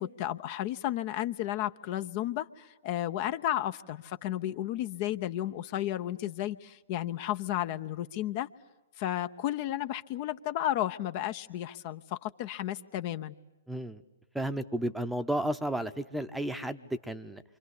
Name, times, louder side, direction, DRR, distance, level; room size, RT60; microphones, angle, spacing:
voice 1, 0.0-8.5 9.0-13.3, left 13 dB, 40° left, 11 dB, 0.9 m, -33 dB
voice 2, 13.7-14.0 14.3-17.4, right 1 dB, 5° right, 10 dB, 0.9 m, -33 dB
28.5 x 25.0 x 8.4 m, 1.0 s
hypercardioid pair, 125°, 0 cm